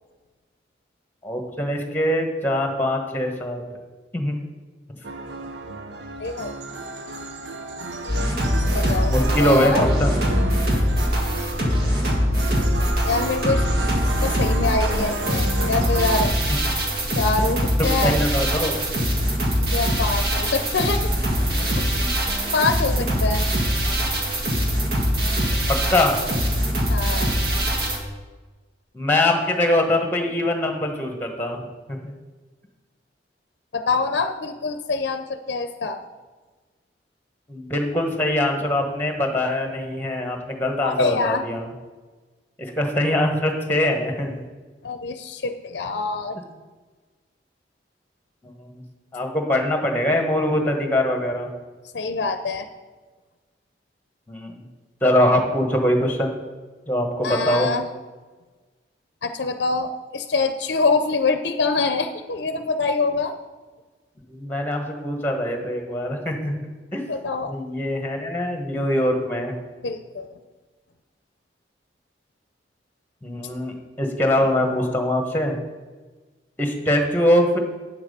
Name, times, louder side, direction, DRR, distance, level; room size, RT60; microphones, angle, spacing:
voice 1, 1.2-3.6 4.1-4.4 9.1-10.1 18.0-18.8 25.9-26.2 28.9-32.1 37.5-41.7 42.6-44.4 48.4-48.8 49.1-51.5 54.3-54.6 55.0-56.3 56.9-57.7 64.3-66.6 66.9-67.0 67.5-69.5 73.2-75.5 76.6-77.6, left 1 dB, 10° left, 3 dB, 1.3 m, -23 dB
sound 1, 5.0-16.2, right 2 dB, 85° right, 0.9 m, -32 dB
voice 2, 6.2-6.5 8.7-9.1 9.4-9.9 13.1-13.6 14.2-16.3 17.1-18.2 19.6-21.1 21.8-21.9 22.5-23.5 26.9-27.4 33.7-36.0 40.8-41.4 44.8-46.4 51.9-52.7 57.2-57.9 59.2-63.3 67.1-67.5 69.8-70.3 74.4-74.9, left 3 dB, 75° left, 8 dB, 0.6 m, -25 dB
sound 2, 8.1-28.0, equal, 60° right, 1.9 m, -22 dB
9.1 x 5.9 x 6.7 m, 1.3 s
head